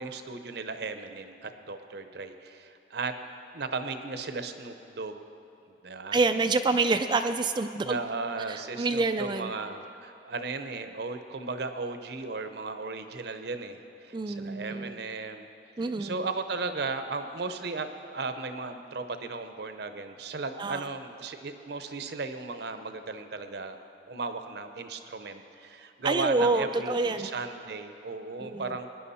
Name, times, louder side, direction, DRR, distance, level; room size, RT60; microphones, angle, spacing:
voice 1, 0.0-3.1 3.5-5.2 5.8-6.2 7.8-15.5 15.8-23.8 24.1-28.9, right 3 dB, 65° right, 8 dB, 0.8 m, -36 dB
voice 2, 6.1-8.0 8.5-9.5 14.1-15.0 15.8-16.2 20.6-20.9 26.0-27.3 28.4-28.7, right 3 dB, 25° right, 8 dB, 0.3 m, -27 dB
19.5 x 10.0 x 4.2 m, 2.9 s
head